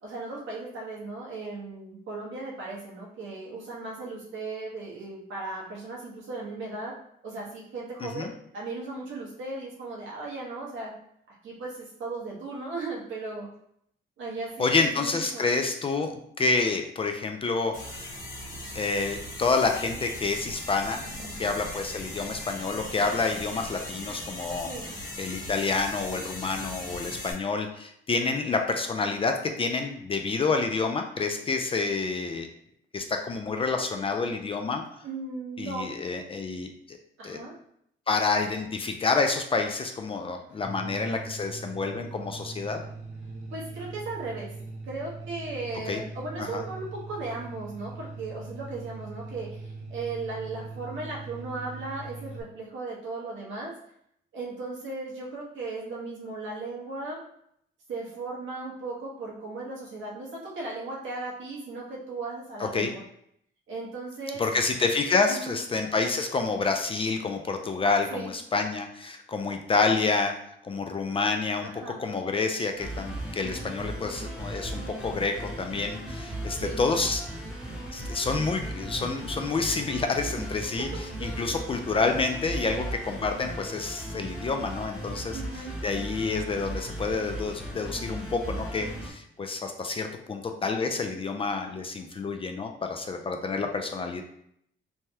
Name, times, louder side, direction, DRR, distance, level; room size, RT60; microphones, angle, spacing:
voice 1, 0.0-6.9 7.2-8.3 8.5-10.9 11.4-13.5 14.2-15.5 21.2-21.4 24.7-24.9 35.0-35.9 37.2-37.5 40.5-40.6 43.5-44.5 44.8-53.7 54.3-57.2 57.9-63.0 63.7-64.4 65.3-65.6 68.1-68.3 71.6-72.0 76.3-76.8 80.4-80.5 81.2-81.5 82.6-82.9 85.3-85.7, right 3 dB, 75° right, -4 dB, 1.1 m, -37 dB
voice 2, 8.0-8.3 14.6-18.1 18.7-21.0 21.4-24.7 25.2-32.5 32.9-34.8 35.6-37.0 37.2-37.4 38.1-42.8 45.9-46.0 46.4-46.6 62.6-62.9 64.4-70.3 70.6-77.2 77.9-80.9 81.2-94.2, left 4 dB, 30° left, 4 dB, 0.3 m, -28 dB
sound 1, 17.7-27.3, left 1 dB, 45° left, 1.3 m, -39 dB
sound 2, 40.6-52.4, right 3 dB, 35° right, 0.7 m, -41 dB
sound 3, 72.8-89.1, right 1 dB, 5° right, 0.9 m, -37 dB
3.3 x 2.2 x 2.8 m, 0.72 s
cardioid pair, 90°, 20 cm